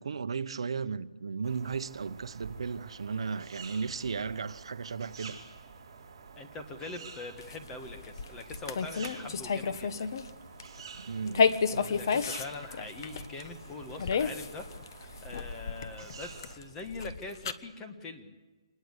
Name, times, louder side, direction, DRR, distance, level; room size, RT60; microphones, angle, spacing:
voice 1, 0.0-5.4 11.0-12.0, right 5 dB, 65° right, 1.0 m, -35 dB
sound 1, 1.4-16.6, right 5 dB, 30° right, 4.8 m, -49 dB
voice 2, 6.4-10.1 11.9-14.7 15.0-18.3, left 3 dB, 10° left, 1.5 m, -43 dB
sound 2, 7.4-10.3 10.6-10.8 11.3-17.5, left 5 dB, 40° left, 1.2 m, -31 dB
26.5 x 20.5 x 8.2 m
hypercardioid pair, 170°, 3 cm